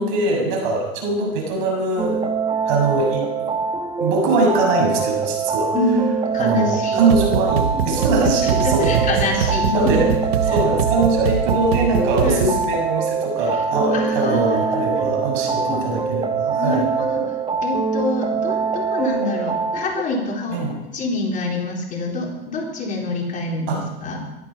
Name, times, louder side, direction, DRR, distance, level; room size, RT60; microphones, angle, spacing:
voice 1, 0.0-2.2 2.6-3.2 4.0-5.7 6.4-9.1 9.7-10.1 10.5-16.9 20.5-20.7 23.7-23.8, right 2 dB, 55° right, 1 dB, 6.6 m, -22 dB
sound 1, 2.0-20.0, right 5 dB, 15° right, 1.5 m, -23 dB
voice 2, 5.7-7.0 8.2-10.6 12.2-12.5 13.9-15.8 16.6-17.2 17.6-24.2, left 2 dB, 25° left, -1 dB, 4.2 m, -26 dB
sound 2, 7.1-12.7, right 7 dB, 75° right, 1.3 m, -23 dB
16.5 x 13.0 x 5.7 m, 0.97 s
hypercardioid pair, 115°, 31 cm